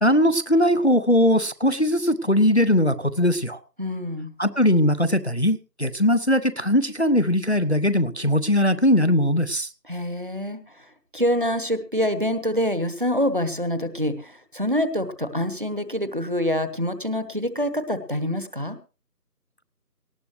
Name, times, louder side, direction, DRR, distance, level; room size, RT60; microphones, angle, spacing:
voice 1, 0.0-3.6 4.4-9.7, left 1 dB, 45° left, 14 dB, 0.7 m, -20 dB
voice 2, 3.8-4.3 9.9-10.6 11.1-18.8, equal, 35° right, 12 dB, 1.1 m, -26 dB
18.5 x 15.0 x 3.2 m, 0.33 s
figure-of-eight pair, 170°, 48 cm